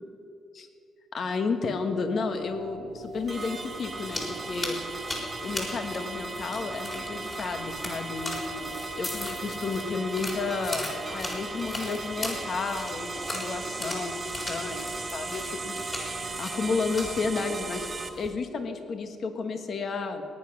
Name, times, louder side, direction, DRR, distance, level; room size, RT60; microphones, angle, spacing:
voice 1, 1.1-4.8 5.4-17.9 18.2-20.2, left 4 dB, 55° left, 7 dB, 1.4 m, -32 dB
sound 1, 2.1-18.2, equal, 85° left, 2.3 m, -45 dB
sound 2, 3.1-18.3, left 1 dB, 25° left, 4.1 m, -39 dB
sound 3, 3.3-18.1, right 3 dB, 30° right, 1.4 m, -37 dB
18.0 x 9.8 x 6.0 m, 2.5 s
cardioid pair, 90°, 0 cm